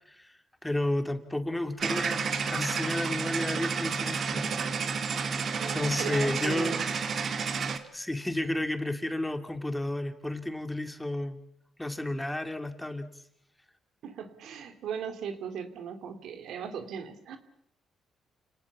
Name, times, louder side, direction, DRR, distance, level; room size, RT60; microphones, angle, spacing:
voice 1, 0.6-4.5 5.7-6.8 7.9-11.4 11.8-13.1, left 1 dB, 10° left, 7 dB, 2.4 m, -32 dB
sound 1, 1.8-7.8, right 5 dB, 50° right, 2.3 m, -31 dB
voice 2, 5.6-7.0 14.0-17.4, right 7 dB, 75° right, 8 dB, 2.9 m, -38 dB
29.0 x 18.5 x 7.3 m, 0.76 s
cardioid pair, 90°, 0 cm